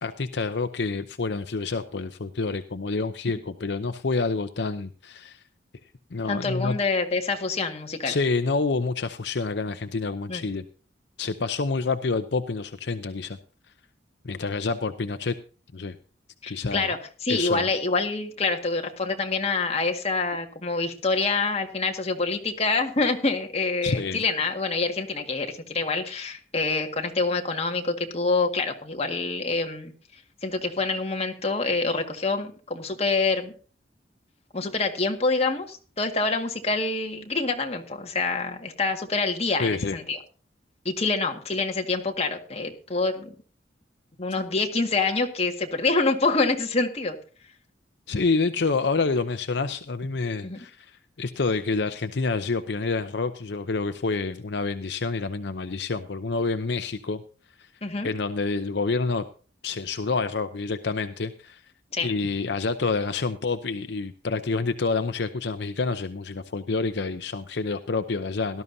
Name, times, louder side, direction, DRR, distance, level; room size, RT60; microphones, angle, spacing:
voice 1, 0.0-5.4 6.1-6.8 8.0-10.7 11.2-13.4 14.2-15.4 15.7-16.0 16.5-16.9 17.3-17.7 23.8-24.2 39.6-40.0 48.1-57.2 57.6-57.7 58.0-59.2 59.6-61.6 62.0-68.6, left 4 dB, 65° left, 10 dB, 0.7 m, -28 dB
voice 2, 6.3-8.1 10.3-10.4 16.4-29.9 30.4-33.5 34.5-40.2 40.9-43.3 44.2-47.2 50.4-50.6 57.8-58.1 61.9-62.1, left 3 dB, 35° left, 3 dB, 1.8 m, -26 dB
18.0 x 12.5 x 2.7 m, 0.38 s
head